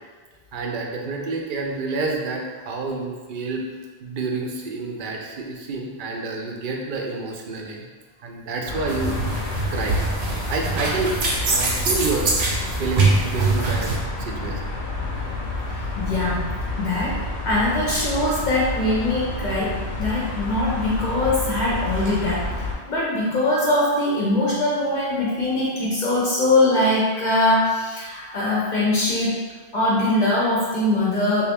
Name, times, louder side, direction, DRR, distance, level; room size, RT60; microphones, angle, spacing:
voice 1, 0.5-3.6 4.0-7.8 8.2-9.1 9.7-10.0 10.5-11.2 11.5-13.9 14.2-14.6 16.9-17.0, right 3 dB, 60° right, 1 dB, 0.6 m, -28 dB
sound 1, 8.7-22.8, left 2 dB, 85° left, 0.9 m, -29 dB
sound 2, 8.9-14.0, right 3 dB, 85° right, 1.0 m, -23 dB
voice 2, 15.7-16.4 16.8-22.5 22.9-29.4 29.7-31.5, left 2 dB, 50° left, -6 dB, 0.7 m, -22 dB
3.3 x 2.5 x 3.4 m, 1.4 s
omnidirectional pair, 1.1 m